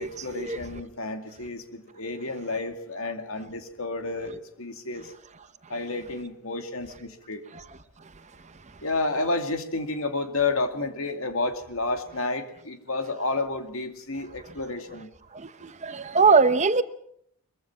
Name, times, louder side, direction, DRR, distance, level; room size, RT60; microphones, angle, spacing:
voice 1, 0.0-5.1 5.7-7.4 8.8-15.1, left 3 dB, 65° left, 2.4 m, -31 dB
voice 2, 15.8-16.8, right 4 dB, 30° right, 0.9 m, -20 dB
22.5 x 22.5 x 6.0 m
head